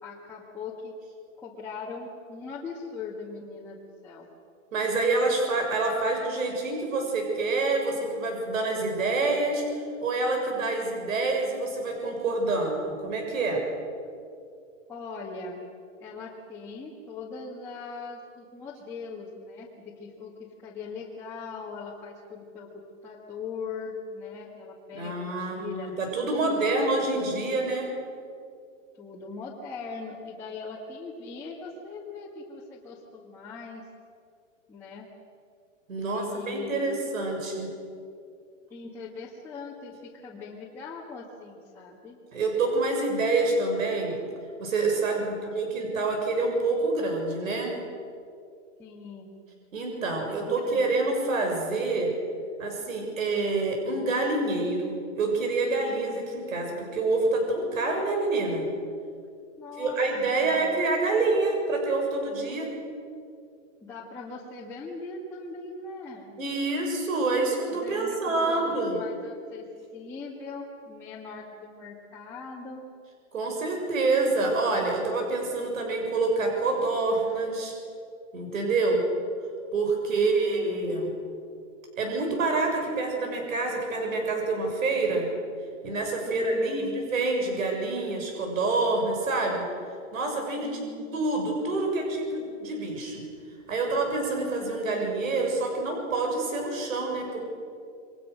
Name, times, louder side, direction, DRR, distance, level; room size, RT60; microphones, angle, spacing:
voice 1, 0.0-0.9 1.4-4.3 14.9-15.6 16.0-27.6 29.0-33.8 34.7-35.1 36.0-37.0 38.7-42.2 45.2-45.6 48.8-49.4 50.3-51.0 59.6-60.0 60.3-60.7 63.8-66.3 67.8-72.9 80.1-81.0 86.3-87.0 90.6-91.2, left 4 dB, 5° left, -7 dB, 1.9 m, -40 dB
voice 2, 4.7-13.6 24.9-27.9 35.9-37.7 42.3-44.2 44.6-47.8 49.7-52.1 52.6-58.7 59.8-62.7 66.4-69.0 73.3-77.7 78.3-79.0 79.7-81.1 82.0-85.3 85.8-89.7 90.1-90.8 91.1-93.2 93.7-97.4, right 3 dB, 90° right, 2 dB, 6.8 m, -27 dB
28.0 x 23.5 x 6.6 m, 2.4 s
hypercardioid pair, 165°, 39 cm